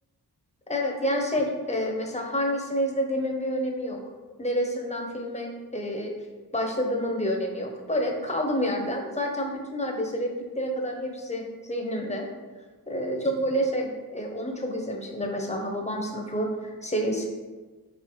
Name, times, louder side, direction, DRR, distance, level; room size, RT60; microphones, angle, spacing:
voice 1, 0.7-4.0 4.4-6.1 6.5-11.4 11.7-12.3 12.9-17.3, equal, 20° left, 1 dB, 0.8 m, -28 dB
4.8 x 2.8 x 3.1 m, 1.3 s
wide cardioid pair, 50°, 38 cm